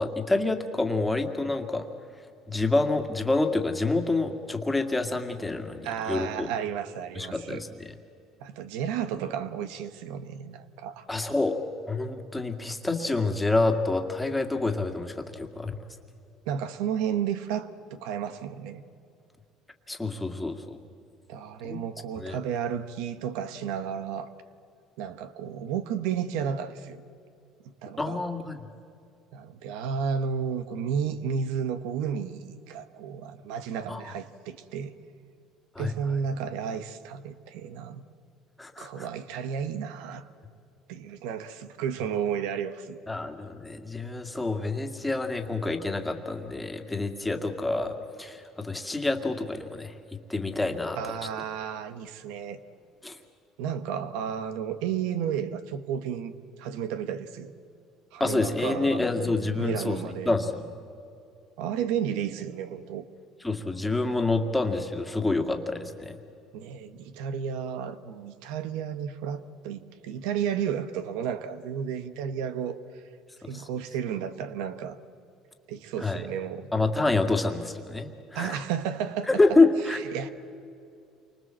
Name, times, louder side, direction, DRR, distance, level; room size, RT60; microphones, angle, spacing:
voice 1, 0.0-1.9 2.5-6.5 7.2-7.9 11.1-15.8 19.9-20.8 21.6-21.8 22.2-22.4 28.0-28.6 33.9-34.0 35.8-35.9 38.6-39.1 43.1-50.0 50.3-51.0 53.0-53.2 58.2-60.7 63.4-66.2 73.4-73.7 76.0-76.2 76.7-78.6 79.3-80.0, left 3 dB, 10° left, 4 dB, 2.2 m, -27 dB
voice 2, 5.8-7.6 8.4-11.1 16.5-18.8 21.3-24.3 25.0-27.0 27.8-28.2 29.3-34.9 35.8-38.0 38.8-40.3 40.9-43.0 50.9-52.6 53.6-56.3 56.6-57.5 58.1-59.0 59.6-60.3 61.6-63.1 66.5-73.0 73.5-75.0 75.7-76.7 78.3-79.3 79.8-80.3, right 8 dB, 85° right, 11 dB, 1.3 m, -32 dB
29.0 x 24.5 x 7.7 m, 2.5 s
cardioid pair, 125°, 0 cm